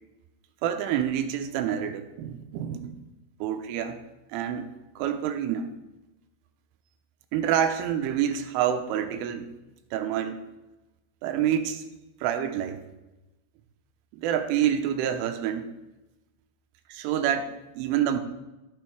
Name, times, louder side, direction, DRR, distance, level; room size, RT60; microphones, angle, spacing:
voice 1, 0.6-3.1 3.4-4.0 4.3-4.7 5.0-5.7 7.3-9.5 9.9-10.4 11.2-11.8 12.2-12.8 14.1-15.7 16.9-18.2, right 9 dB, 85° right, 7 dB, 3.4 m, -27 dB
15.0 x 6.2 x 4.6 m, 1.0 s
omnidirectional pair, 5.6 m